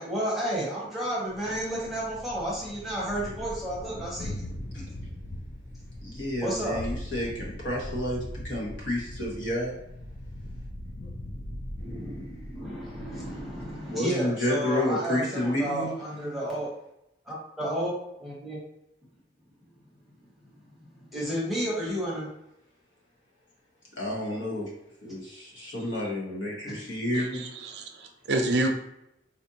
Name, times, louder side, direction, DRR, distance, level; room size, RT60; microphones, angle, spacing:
voice 1, 0.0-4.4 6.4-6.8 11.8-16.7 17.3-17.9 18.2-18.6 20.9-22.3, equal, ahead, -6 dB, 0.8 m, -32 dB
Thunder, 1.3-13.9, left 1 dB, 30° left, 0.4 m, -40 dB
voice 2, 6.0-9.7 13.9-15.9 24.0-24.7 25.0-27.4, left 1 dB, 85° left, -3 dB, 1.2 m, -30 dB
voice 3, 27.1-28.7, right 2 dB, 65° right, 3 dB, 0.5 m, -28 dB
4.1 x 2.5 x 2.7 m, 0.83 s
head